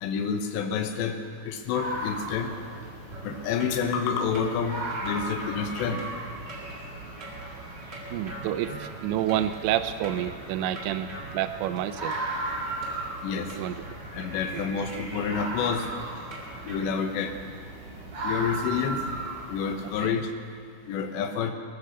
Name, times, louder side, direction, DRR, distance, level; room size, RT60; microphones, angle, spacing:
voice 1, 0.0-1.1 1.4-2.5 3.2-4.8 5.0-6.0 13.2-13.5 14.1-15.8 16.6-17.3 18.2-19.0 19.5-20.3 20.9-21.5, left 6 dB, 80° left, 6 dB, 3.1 m, -28 dB
sound 1, 1.7-20.1, right 2 dB, 40° right, 3.8 m, -37 dB
sound 2, 3.1-16.8, right 1 dB, 25° right, 1.2 m, -44 dB
voice 2, 8.1-11.1 11.3-12.2 13.5-13.8 14.5-14.6 20.0-20.1, right 12 dB, 85° right, 11 dB, 2.8 m, -29 dB
19.0 x 10.0 x 6.8 m, 2.2 s
omnidirectional pair, 5.2 m